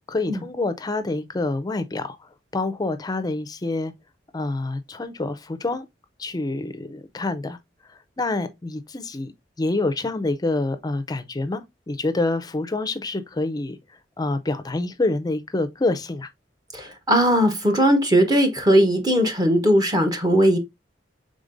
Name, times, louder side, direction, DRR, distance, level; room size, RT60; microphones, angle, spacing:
voice 1, 0.1-2.2 2.5-3.9 4.3-5.9 6.2-7.6 8.2-9.3 9.6-13.8 14.2-16.3, left 2 dB, 20° left, 0.4 m, -27 dB
voice 2, 16.7-20.6, equal, 20° right, 0.8 m, -19 dB
5.0 x 3.7 x 2.5 m
head